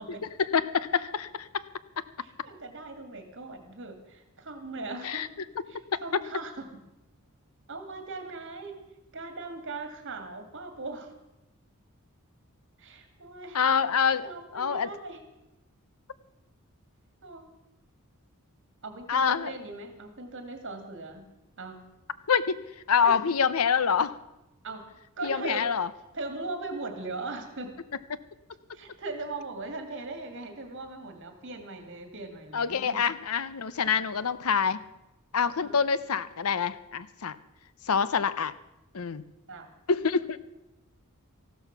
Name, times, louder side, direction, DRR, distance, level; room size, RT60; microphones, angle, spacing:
voice 1, 0.4-1.6 5.0-5.3 6.1-6.2 13.5-14.9 19.1-19.5 22.3-22.6 22.9-24.1 25.2-25.9 32.5-34.8 35.3-37.4 37.9-38.5 38.9-39.2 39.9-40.4, left 6 dB, 70° left, 16 dB, 0.7 m, -26 dB
voice 2, 2.2-5.3 5.7-6.7 7.7-8.8 9.1-11.1 12.8-13.6 14.2-15.2 17.2-17.4 18.8-21.2 21.6-21.8 23.0-23.2 24.6-24.8 25.2-25.6 26.1-27.8 28.7-33.0 35.5-35.8 39.5-39.7, right 3 dB, 55° right, 7 dB, 2.3 m, -39 dB
14.5 x 12.5 x 6.0 m, 0.94 s
head